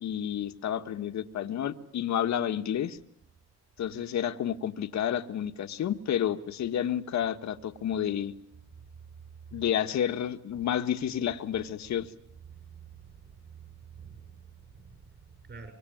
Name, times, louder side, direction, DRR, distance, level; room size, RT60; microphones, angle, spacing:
voice 1, 0.0-3.0 3.8-8.3 9.5-12.1, left 9 dB, 65° left, 8 dB, 1.6 m, -30 dB
voice 2, 12.5-15.7, right 6 dB, 40° right, 5 dB, 6.7 m, -49 dB
25.5 x 24.0 x 9.3 m, 0.71 s
cardioid pair, 90°, 30 cm